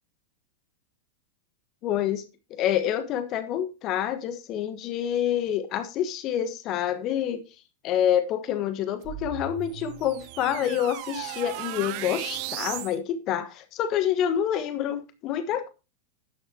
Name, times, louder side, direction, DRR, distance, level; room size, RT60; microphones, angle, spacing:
voice 1, 1.8-2.2 2.5-7.4 7.8-15.7, left 10 dB, 35° left, 1.3 m, -27 dB
sound 1, 9.0-13.0, right 15 dB, 45° right, 0.9 m, -36 dB
11.5 x 10.0 x 2.8 m
figure-of-eight pair, 90°, 0 cm